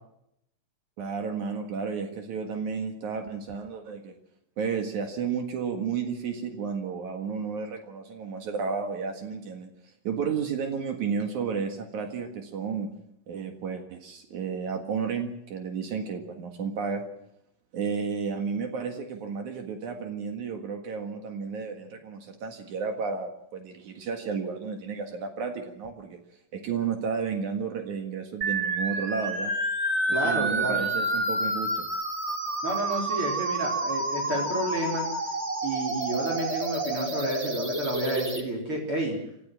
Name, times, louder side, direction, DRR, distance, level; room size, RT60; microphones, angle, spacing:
voice 1, 1.0-4.1 4.6-12.9 13.3-17.0 17.7-26.2 26.5-29.5 30.2-31.9, right 6 dB, 70° right, 5 dB, 3.2 m, -32 dB
sound 1, 28.4-38.4, right 2 dB, 25° right, 2.4 m, -29 dB
voice 2, 30.1-30.9 32.6-35.1 35.6-39.1, right 1 dB, 45° right, -1 dB, 4.8 m, -30 dB
27.0 x 13.5 x 7.4 m, 0.76 s
omnidirectional pair, 3.5 m